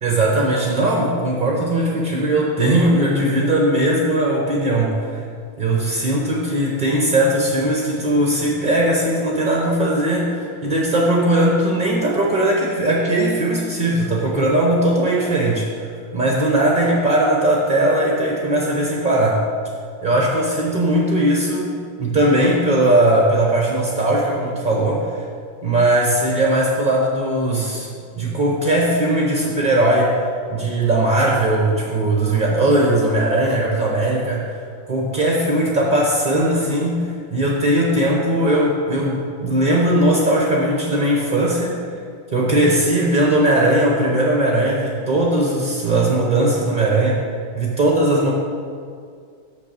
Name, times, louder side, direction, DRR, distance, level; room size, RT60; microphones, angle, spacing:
voice 1, 0.0-5.2 5.6-19.4 20.0-25.2 25.6-27.9 28.2-30.2 30.5-34.6 34.9-41.8 42.3-47.2 47.5-48.3, right 1 dB, 40° right, -2 dB, 0.6 m, -19 dB
6.6 x 6.0 x 6.7 m, 2.2 s
omnidirectional pair, 2.2 m